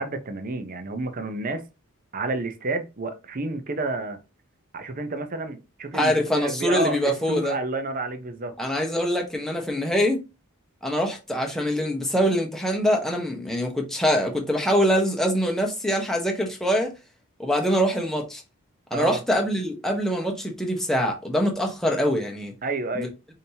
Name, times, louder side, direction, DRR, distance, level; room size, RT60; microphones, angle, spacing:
voice 1, 0.0-1.6 2.1-4.2 4.7-8.5 18.9-19.2 22.6-23.1, right 2 dB, 40° right, 0.7 m, -30 dB
voice 2, 5.9-7.6 8.6-10.2 10.8-16.9 17.4-18.4 18.9-22.5 22.9-23.1, equal, ahead, 0.8 m, -24 dB
5.1 x 2.8 x 2.8 m
head